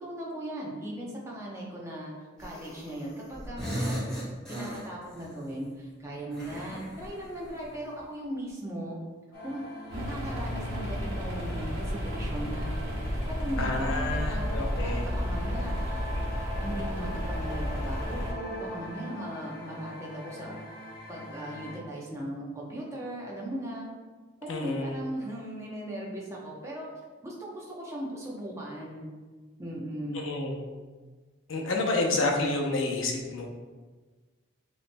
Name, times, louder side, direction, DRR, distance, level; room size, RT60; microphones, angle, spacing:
voice 1, 0.0-4.0 4.5-9.0 9.4-9.6 9.9-12.7 13.3-16.1 16.6-20.6 21.1-23.9 24.4-26.9 27.2-29.1 29.6-30.3, right 1 dB, 15° right, -4 dB, 0.8 m, -38 dB
sound 1, 2.4-3.1 3.3-5.3 6.3-7.8, equal, 5° left, 1.5 m, -37 dB
sound 2, 9.3-21.8, left 1 dB, 50° left, 1.1 m, -42 dB
sound 3, 9.9-18.3, equal, 90° right, 1.3 m, -32 dB
voice 2, 13.6-15.1 24.5-25.0 30.1-30.7 31.5-33.5, left 2 dB, 75° left, 1 dB, 0.7 m, -29 dB
6.8 x 3.1 x 2.2 m, 1.4 s
head